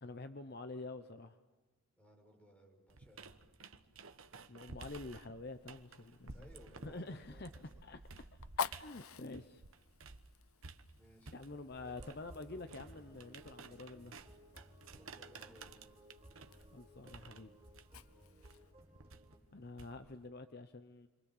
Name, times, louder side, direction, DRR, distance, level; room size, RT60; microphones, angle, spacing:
voice 1, 0.0-1.4 4.5-6.5 6.8-7.5 7.8-8.3 8.6-9.6 11.3-14.2 16.7-17.5 19.5-21.1, left 2 dB, 45° left, 9 dB, 0.9 m, -48 dB
voice 2, 2.0-3.3 6.3-7.8 10.9-11.4 14.9-15.7, equal, 5° left, 0 dB, 6.0 m, -61 dB
sound 1, 2.9-10.3 10.6-20.2, right 4 dB, 70° right, 1.2 m, -54 dB
Fire, 5.5-18.7, left 6 dB, 75° left, 0.7 m, -50 dB
sound 2, 11.8-19.4, equal, 30° right, 5.9 m, -60 dB
29.5 x 24.0 x 7.3 m, 1.2 s
head